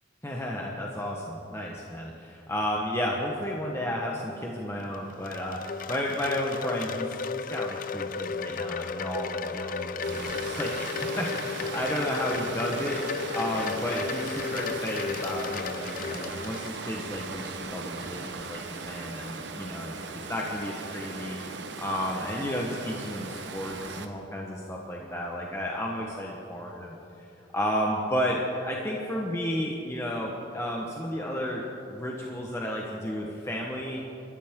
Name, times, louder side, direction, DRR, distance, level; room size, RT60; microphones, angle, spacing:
voice 1, 0.2-13.0 13.3-19.9 20.3-21.4 21.8-26.9 27.5-34.0, equal, 15° left, -2 dB, 1.2 m, -32 dB
Wind chime, 4.8-17.1, left 5 dB, 45° left, 0.5 m, -34 dB
Water, 10.0-24.1, right 4 dB, 65° right, 1.0 m, -38 dB
25.5 x 13.5 x 3.8 m, 2.8 s
head